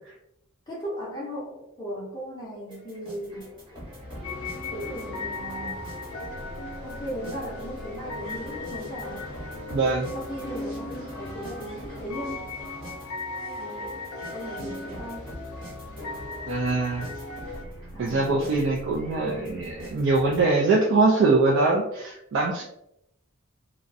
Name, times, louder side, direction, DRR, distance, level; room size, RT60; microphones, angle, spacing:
voice 1, 0.7-3.5 4.7-5.8 6.8-9.3 10.1-12.5 13.5-15.3 17.9-18.7, equal, 20° left, -7 dB, 0.5 m, -37 dB
sound 1, 2.7-20.4, equal, 20° right, 0.9 m, -42 dB
sound 2, 4.2-17.6, left 3 dB, 90° left, 0.4 m, -38 dB
voice 2, 9.7-10.1 16.5-17.1 18.0-22.6, right 3 dB, 60° right, -1 dB, 0.3 m, -23 dB
2.4 x 2.0 x 2.5 m, 0.80 s
head